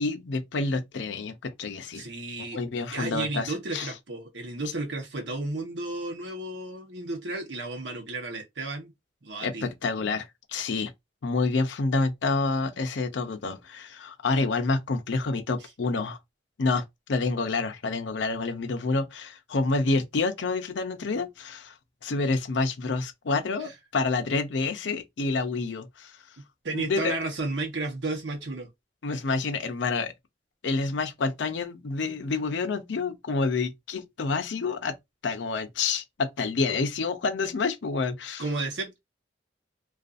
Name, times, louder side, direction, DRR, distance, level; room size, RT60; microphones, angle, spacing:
voice 1, 0.0-2.0 2.5-3.9 9.4-10.9 11.2-16.2 16.6-16.8 17.1-21.7 22.0-26.1 26.7-27.2 29.0-30.1 30.6-34.9 35.2-38.4, left 3 dB, 80° left, 0.5 m, -28 dB
voice 2, 1.9-2.6 2.9-8.9 9.2-9.7 23.6-23.7 26.4-28.7 38.4-39.0, right 2 dB, 85° right, 0.9 m, -33 dB
2.5 x 2.3 x 2.4 m
head